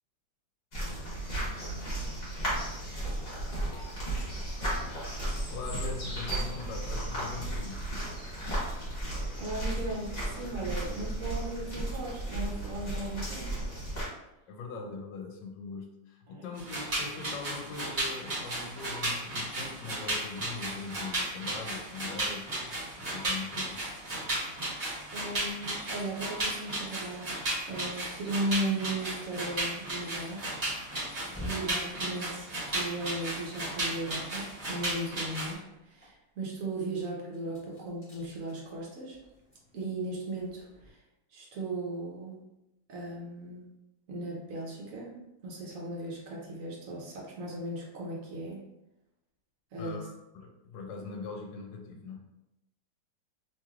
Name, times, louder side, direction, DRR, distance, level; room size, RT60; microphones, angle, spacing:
sound 1, 0.7-14.0, right 1 dB, 35° left, 1.2 m, -34 dB
voice 1, 5.5-7.8 14.5-23.8 49.8-52.2, left 4 dB, 80° left, 2 dB, 1.2 m, -41 dB
voice 2, 9.4-13.5 16.3-16.4 25.1-27.4 27.7-30.5 31.4-39.2 39.7-41.0 41.3-42.4 42.9-43.7 44.1-45.2 45.4-48.6 49.7-50.1, right 2 dB, 60° right, -2 dB, 0.9 m, -37 dB
sound 2, 16.6-35.5, right 1 dB, 40° right, 1.1 m, -35 dB
sound 3, 31.2-34.2 34.5-40.9, left 1 dB, 10° left, 1.2 m, -50 dB
3.1 x 3.0 x 2.3 m, 0.91 s
omnidirectional pair, 2.0 m